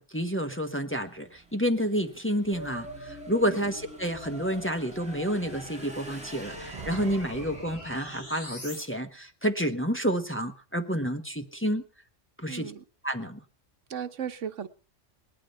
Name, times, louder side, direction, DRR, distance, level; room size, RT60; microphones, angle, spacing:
voice 1, 0.0-11.8 12.4-12.7 13.0-13.4, equal, 10° left, 5 dB, 1.3 m, -29 dB
Motorcycle / Engine, 1.0-8.0, right 1 dB, 5° right, 2.3 m, -49 dB
sound 1, 2.5-8.8, left 1 dB, 55° left, 6.4 m, -44 dB
Thunder, 6.4-8.6, right 5 dB, 30° right, 0.9 m, -45 dB
voice 2, 12.5-12.8 13.9-14.7, right 8 dB, 75° right, 10 dB, 1.3 m, -36 dB
19.0 x 12.5 x 5.6 m, 0.40 s
omnidirectional pair, 1.3 m